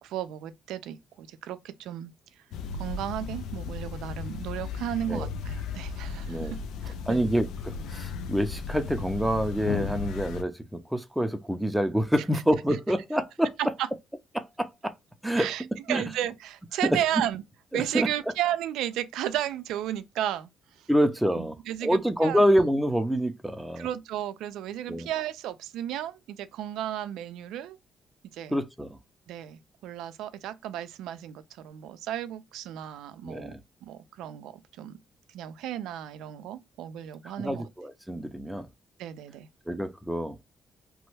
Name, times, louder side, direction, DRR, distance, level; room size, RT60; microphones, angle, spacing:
voice 1, 0.0-2.1 2.8-6.6 6.8-7.2 13.6-13.9 15.4-17.4 17.7-20.5 20.8-20.9 21.4-22.4 23.8-27.8 28.3-28.6 29.3-33.5 33.8-35.0 35.3-37.6 39.0-39.5, right 11 dB, 90° right, 0.4 m, -34 dB
sound 1, 2.5-10.4, left 5 dB, 85° left, 0.4 m, -35 dB
voice 2, 7.1-13.5 14.3-14.9 15.2-15.5 15.9-16.0 16.8-17.0 17.7-18.1 20.9-23.9 24.9-25.1 28.5-29.0 33.2-33.6 37.4-38.7 39.7-40.4, equal, 5° right, 0.6 m, -27 dB
3.0 x 2.2 x 3.1 m
cardioid pair, 90°, 0 cm